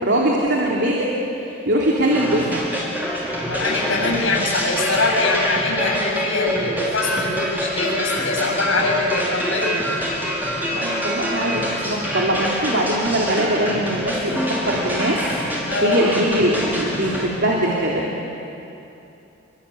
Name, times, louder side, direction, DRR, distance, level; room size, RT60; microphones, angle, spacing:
voice 1, 0.0-2.6 10.7-15.3 15.8-18.3, right 1 dB, 60° right, -3 dB, 3.2 m, -22 dB
sound 1, 2.1-17.3, equal, 10° right, 5.2 m, -26 dB
voice 2, 3.5-9.8 15.7-16.0, left 3 dB, 85° left, -3 dB, 7.9 m, -23 dB
27.0 x 23.5 x 8.6 m, 2.8 s
head